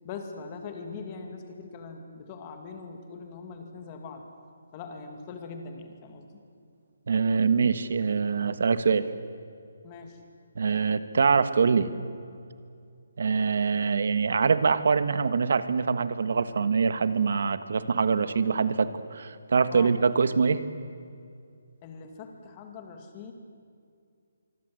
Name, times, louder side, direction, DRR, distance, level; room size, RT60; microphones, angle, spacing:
voice 1, 0.0-4.2 4.7-6.4 9.8-10.2 19.7-20.0 21.8-23.3, left 5 dB, 20° left, 4 dB, 2.4 m, -41 dB
voice 2, 7.1-9.1 10.5-11.9 13.2-20.6, right 5 dB, 55° right, 12 dB, 1.4 m, -24 dB
25.5 x 24.0 x 7.9 m, 2.3 s
hypercardioid pair, 175°, 0 cm